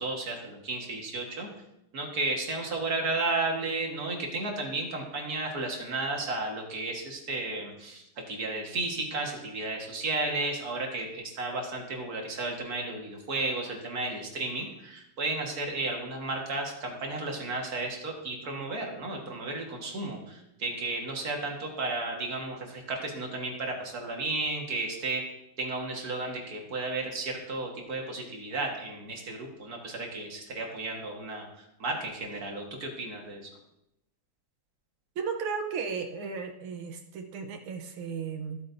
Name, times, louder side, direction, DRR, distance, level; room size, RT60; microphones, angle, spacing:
voice 1, 0.0-1.5 1.9-25.2 25.6-33.5, right 2 dB, 45° right, 1 dB, 2.1 m, -33 dB
voice 2, 35.2-38.6, right 5 dB, 80° right, 4 dB, 1.8 m, -35 dB
14.5 x 8.6 x 2.7 m, 0.84 s
omnidirectional pair, 2.4 m